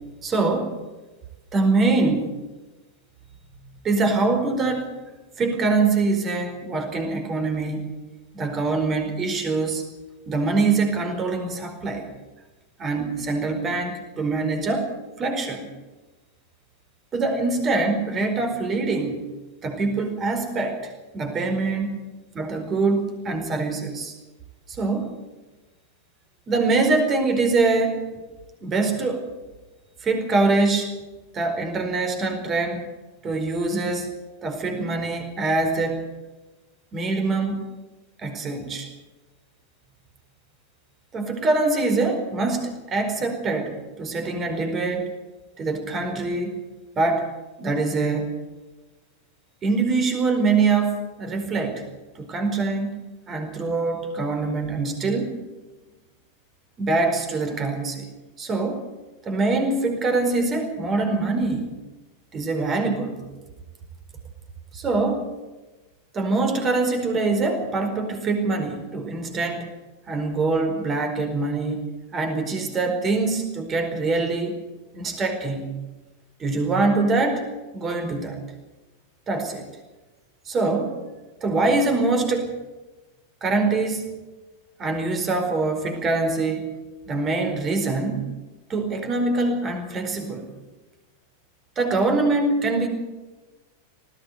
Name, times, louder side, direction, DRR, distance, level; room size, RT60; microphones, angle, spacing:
voice 1, 0.2-0.7 1.5-2.3 3.8-4.9 5.4-7.9 8.3-9.8 10.3-12.0 12.8-14.9 15.2-15.7 17.1-19.2 19.6-22.0 22.3-24.1 24.7-25.1 26.5-28.0 28.6-29.3 30.0-30.9 31.3-32.9 33.2-34.1 34.4-36.0 36.9-37.7 38.2-38.9 41.1-45.1 45.6-46.5 46.9-47.3 47.6-48.3 49.6-51.8 52.1-52.9 53.3-55.4 56.8-58.1 58.4-58.8 59.2-61.7 62.3-63.2 64.7-65.2 66.1-69.7 70.1-71.9 72.1-74.6 74.9-75.7 76.4-77.4 77.7-78.4 79.3-79.7 80.4-81.0 81.4-82.6 83.4-84.1 84.8-86.7 87.1-88.3 88.7-90.5 91.8-92.9, right 3 dB, 25° right, 5 dB, 4.6 m, -24 dB
19.5 x 16.0 x 8.2 m, 1.2 s
figure-of-eight pair, 90°, 0 cm